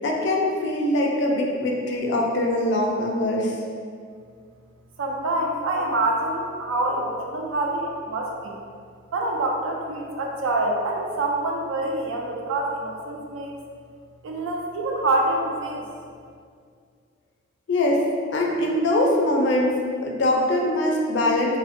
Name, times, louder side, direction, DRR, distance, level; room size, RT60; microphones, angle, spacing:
voice 1, 0.0-3.6 17.7-18.0 18.3-21.6, left 1 dB, 60° left, 0 dB, 0.3 m, -22 dB
voice 2, 5.0-8.5 9.1-13.6 14.2-15.8, right 2 dB, 75° right, 0 dB, 0.4 m, -26 dB
2.5 x 2.1 x 2.5 m, 2.2 s
head